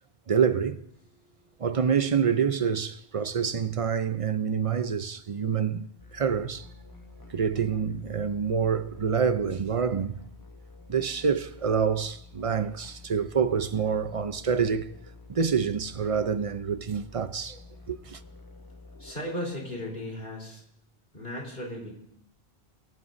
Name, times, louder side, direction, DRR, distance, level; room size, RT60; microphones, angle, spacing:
voice 1, 0.3-0.8 1.6-6.7 7.3-10.2 10.9-14.9 15.3-17.6 17.9-18.2, right 6 dB, 40° right, 0.6 m, -27 dB
sound 1, 6.0-19.1, left 3 dB, 20° left, 1.0 m, -49 dB
voice 2, 19.0-20.6 21.1-21.9, left 1 dB, 55° left, 4.0 m, -36 dB
24.0 x 15.0 x 2.7 m
omnidirectional pair, 1.1 m